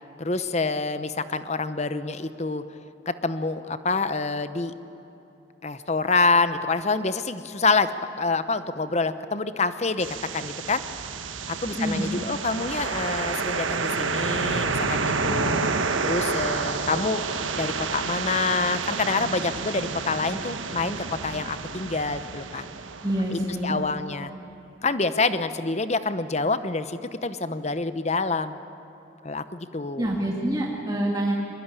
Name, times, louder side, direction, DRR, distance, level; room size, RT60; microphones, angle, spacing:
voice 1, 0.2-2.6 3.1-4.7 5.6-7.9 8.2-10.1 10.3-10.8 11.5-17.2 17.5-22.6 23.3-24.3 24.8-28.6 29.2-30.1, left 3 dB, 35° left, 12 dB, 0.9 m, -27 dB
sound 1, 10.0-23.9, right 4 dB, 85° right, 1.3 m, -29 dB
voice 2, 11.7-12.2 23.0-23.8 30.0-31.4, right 1 dB, 20° right, -3 dB, 2.3 m, -26 dB
22.5 x 21.5 x 9.9 m, 3.0 s
head